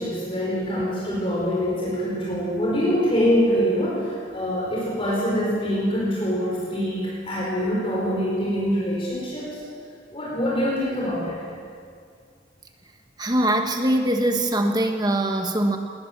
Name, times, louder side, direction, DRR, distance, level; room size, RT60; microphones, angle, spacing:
voice 1, 0.0-9.6 10.1-11.4, equal, 30° left, -5 dB, 4.8 m, -24 dB
voice 2, 13.2-15.8, right 1 dB, 20° right, 4 dB, 1.3 m, -22 dB
21.0 x 19.5 x 7.4 m, 2.2 s
head